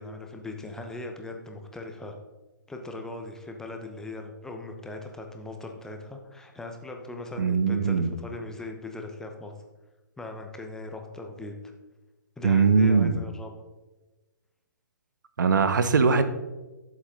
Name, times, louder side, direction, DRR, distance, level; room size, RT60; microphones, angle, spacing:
voice 1, 0.0-2.1 2.7-9.5 10.2-11.5 12.4-13.5, left 2 dB, 5° left, 3 dB, 1.0 m, -39 dB
voice 2, 7.4-8.1 12.4-13.2 15.4-16.2, right 5 dB, 70° right, 10 dB, 1.0 m, -21 dB
11.0 x 7.3 x 3.8 m, 1.2 s
figure-of-eight pair, 130°, 11 cm